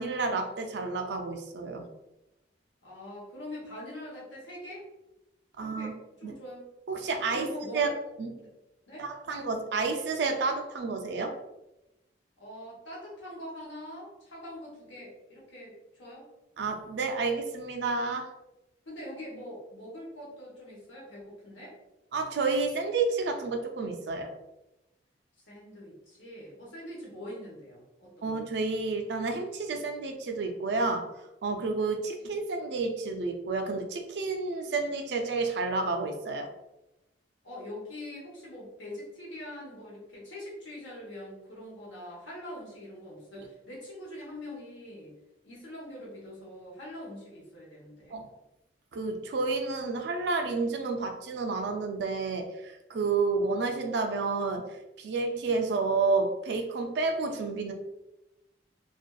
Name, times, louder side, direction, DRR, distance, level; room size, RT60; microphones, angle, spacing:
voice 1, 0.0-1.9 5.6-5.9 6.2-6.4 6.9-7.5 7.7-7.9 8.2-8.3 9.0-11.4 16.6-18.3 22.1-24.3 28.2-31.1 31.4-36.5 43.4-43.5 48.1-48.3 48.9-57.7, right 3 dB, 65° right, 4 dB, 0.4 m, -30 dB
voice 2, 2.8-4.9 5.6-6.7 7.3-7.9 8.4-8.5 8.9-9.5 12.4-16.3 18.9-21.7 25.5-28.3 37.4-45.1 45.4-48.2, left 1 dB, 80° left, -5 dB, 1.0 m, -43 dB
2.5 x 2.3 x 2.2 m, 0.95 s
head